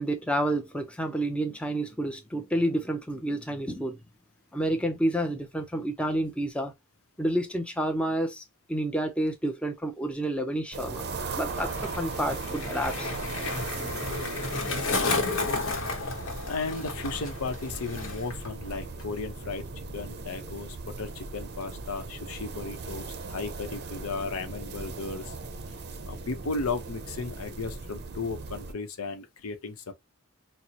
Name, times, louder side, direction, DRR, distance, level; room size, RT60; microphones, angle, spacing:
voice 1, 0.0-4.0 4.5-6.7 7.2-8.4 8.7-11.0 11.4-13.1, right 1 dB, 5° left, 0.5 m, -29 dB
sound 1, 10.7-28.7, right 3 dB, 50° right, 0.6 m, -38 dB
Skateboard, 10.9-18.5 18.7-19.2, left 3 dB, 65° left, 1.1 m, -33 dB
voice 2, 16.5-25.3 26.1-29.9, left 4 dB, 85° left, 0.7 m, -35 dB
4.2 x 2.0 x 2.7 m
head